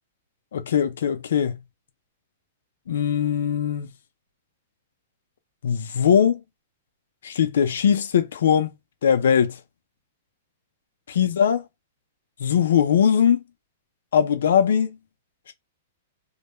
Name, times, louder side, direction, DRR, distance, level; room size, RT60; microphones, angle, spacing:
voice 1, 0.5-1.6 2.9-3.9 5.6-6.4 7.2-8.7 9.0-9.6 11.1-11.6 12.4-13.4 14.1-15.0 15.5-15.6, left 8 dB, 80° left, 0.5 m, -20 dB
2.3 x 2.1 x 3.0 m
hypercardioid pair, 140°, 0 cm